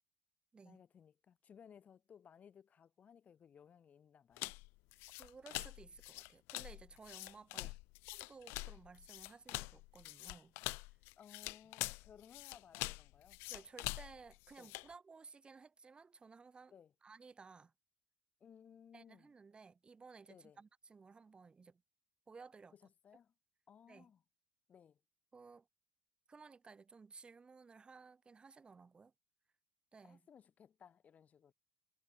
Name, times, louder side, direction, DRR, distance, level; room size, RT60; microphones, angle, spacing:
voice 1, 0.6-4.6 7.6-7.8 11.2-13.4 14.6-14.7 16.7-16.9 18.4-19.3 20.3-20.6 22.7-23.3 23.7-24.2 24.7-25.0 30.0-31.5, left 8 dB, 35° left, 4.8 m, -61 dB
sound 1, 4.4-14.9, left 24 dB, 70° left, 0.6 m, -45 dB
voice 2, 5.2-7.7 8.1-10.5 13.5-16.7 17.0-17.7 18.9-21.8 22.3-22.8 23.9-24.1 25.3-25.7 26.3-29.1 29.9-30.2, right 4 dB, 20° right, 1.7 m, -57 dB
supercardioid pair, 95°, 4 cm